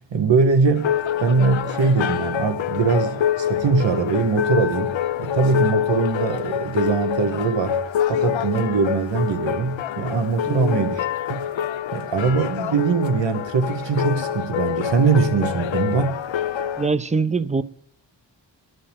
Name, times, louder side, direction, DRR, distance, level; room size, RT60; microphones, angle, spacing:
voice 1, 0.1-0.9 1.2-7.8 8.1-11.4 11.9-16.1, right 4 dB, 70° right, 1.3 m, -21 dB
sound 1, 0.8-16.9, left 9 dB, 90° left, 0.6 m, -26 dB
voice 2, 10.4-10.9 16.8-17.6, right 4 dB, 15° right, 0.5 m, -23 dB
23.5 x 11.0 x 3.5 m
cardioid pair, 60°, 45 cm